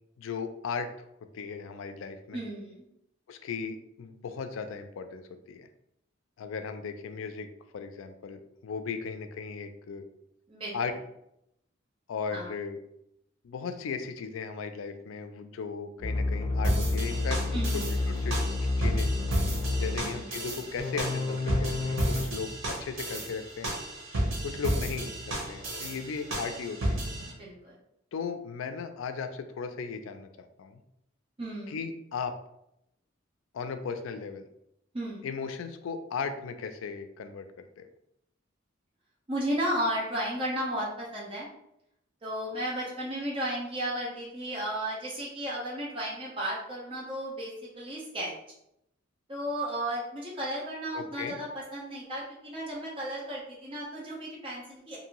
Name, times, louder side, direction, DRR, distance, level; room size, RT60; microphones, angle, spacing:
voice 1, 0.2-0.9 1.3-2.4 3.3-5.7 6.4-7.5 7.7-10.0 10.7-10.9 12.1-12.8 13.4-18.4 18.8-19.1 19.8-23.7 24.4-27.0 28.1-30.8 31.7-32.4 33.5-34.5 35.2-37.5 37.8-37.9 50.9-51.4, left 5 dB, 80° left, 8 dB, 0.4 m, -36 dB
voice 2, 2.3-2.8 10.5-10.8 12.3-12.5 17.5-18.0 19.8-20.4 27.3-27.8 31.4-31.8 34.9-35.3 39.3-41.5 42.2-48.3 49.3-55.0, right 1 dB, 30° right, -5 dB, 0.7 m, -34 dB
sound 1, 16.0-20.0 20.8-22.2, left 2 dB, 35° left, 0.6 m, -29 dB
got a rhythm, 16.6-27.3, right 1 dB, 85° right, 0.9 m, -33 dB
2.6 x 2.6 x 2.9 m, 0.79 s
head